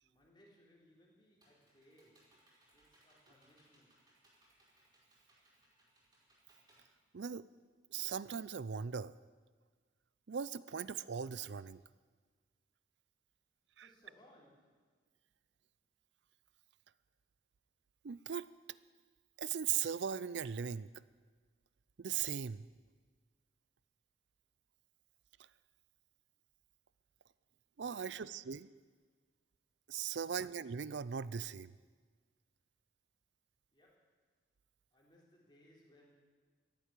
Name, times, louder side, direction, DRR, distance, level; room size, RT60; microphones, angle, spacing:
voice 1, 0.0-2.4 2.7-4.0 13.8-14.8 27.9-28.4 30.1-30.5 33.7-34.1 34.9-36.2, equal, 25° left, -3 dB, 3.8 m, -66 dB
Computer keyboard, 1.0-7.7, right 1 dB, 25° right, 4.7 m, -70 dB
voice 2, 7.1-7.5 7.9-9.1 10.3-11.8 13.8-13.9 18.0-18.5 19.4-20.9 22.0-22.6 27.8-28.7 29.9-31.7, right 7 dB, 70° right, 18 dB, 0.5 m, -39 dB
14.0 x 11.0 x 9.0 m, 1.5 s
head